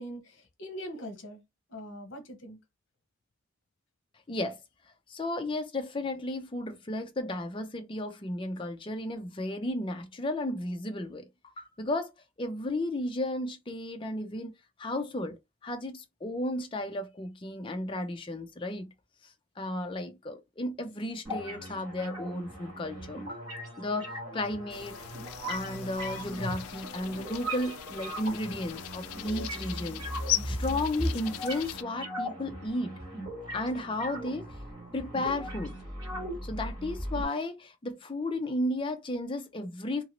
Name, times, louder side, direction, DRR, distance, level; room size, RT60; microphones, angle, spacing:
voice 1, 0.0-1.4 1.7-2.6, equal, 60° left, 0.9 m, -42 dB
voice 2, 5.1-11.2 11.6-12.1 12.4-14.5 14.8-15.4 15.6-18.9 19.6-23.4 23.8-24.9 25.5-30.0 30.4-33.0 33.5-34.5 34.9-35.8 36.4-40.0, left 1 dB, 25° left, 0.4 m, -33 dB
sound 1, 21.2-37.2, equal, 20° right, 1.5 m, -38 dB
sound 2, 24.7-31.8, left 13 dB, 90° left, 0.3 m, -38 dB
2.8 x 2.6 x 3.0 m
head